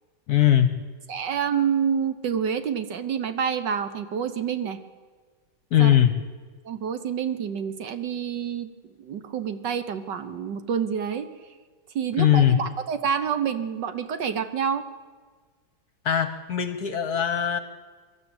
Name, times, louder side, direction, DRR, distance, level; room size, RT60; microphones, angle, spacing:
voice 1, 0.3-0.9 5.7-6.2 12.2-12.7 16.0-17.6, left 10 dB, 55° left, 11 dB, 1.3 m, -20 dB
voice 2, 1.1-4.8 5.8-5.9 6.6-8.7 9.0-11.3 11.9-14.8, right 7 dB, 60° right, 11 dB, 1.5 m, -28 dB
23.0 x 12.5 x 8.8 m, 1.5 s
omnidirectional pair, 2.3 m